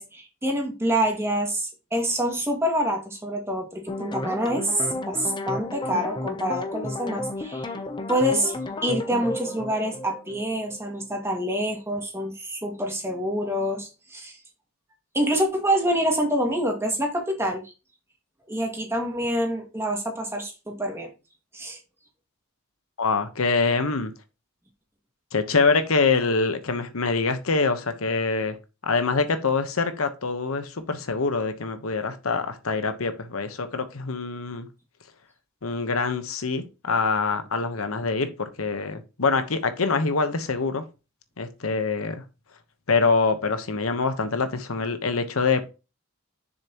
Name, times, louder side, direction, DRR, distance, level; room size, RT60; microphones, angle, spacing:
voice 1, 0.0-7.7 8.1-14.4 15.1-17.7 18.5-21.1 21.5-21.8, equal, 10° right, 2 dB, 1.9 m, -26 dB
sound 1, 3.9-10.9, left 2 dB, 20° left, 0.7 m, -33 dB
voice 2, 23.0-24.1 25.3-28.6 28.8-34.7 35.6-40.8 41.4-42.2 42.9-45.7, left 4 dB, 90° left, 9 dB, 1.1 m, -25 dB
7.0 x 6.8 x 3.0 m, 0.29 s
head